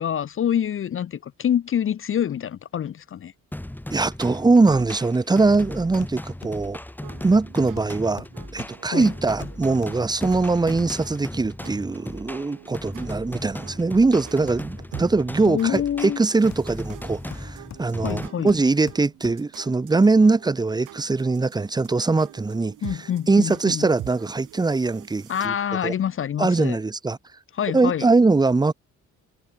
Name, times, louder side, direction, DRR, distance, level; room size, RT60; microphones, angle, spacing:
voice 1, 0.0-3.3 8.9-9.1 15.5-16.3 18.0-18.5 22.8-23.9 25.3-26.8 27.5-28.1, left 9 dB, 45° left, 0.7 m, -26 dB
sound 1, 3.5-18.3, left 1 dB, 5° left, 2.8 m, -36 dB
voice 2, 3.9-6.8 7.2-8.3 8.5-22.7 23.3-25.5 25.8-25.9 26.4-27.2 27.7-28.7, right 3 dB, 15° right, 0.7 m, -21 dB
Hammer, 5.5-5.7 6.0-6.7 7.8-10.7 14.5-15.9 16.5-19.6 20.1-20.2, left 10 dB, 65° left, 2.8 m, -45 dB
sound 2, 7.0-25.5, right 16 dB, 90° right, 4.2 m, -46 dB
cardioid pair, 90°, 30 cm